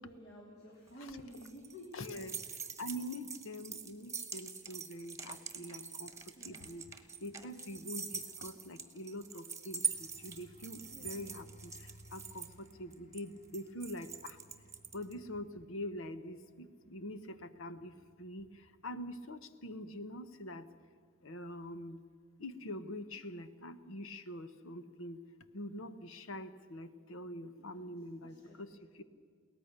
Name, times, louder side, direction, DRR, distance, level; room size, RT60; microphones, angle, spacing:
voice 1, 0.0-2.0 6.4-6.7 10.8-11.2 27.8-28.6, equal, 50° left, -1 dB, 2.8 m, -52 dB
sound 1, 0.9-15.1, right 6 dB, 15° right, 1.4 m, -43 dB
voice 2, 1.9-2.3 2.8-6.1 6.4-6.8 7.2-9.8 10.2-11.7 12.1-14.4 14.9-17.9 18.2-18.5 18.8-20.6 21.2-22.0 22.4-25.2 25.5-28.7, left 1 dB, 70° left, 11 dB, 1.1 m, -44 dB
sound 2, 9.7-20.0 20.4-20.7, equal, 35° left, 1.3 m, -61 dB
22.5 x 18.0 x 6.7 m, 2.1 s
head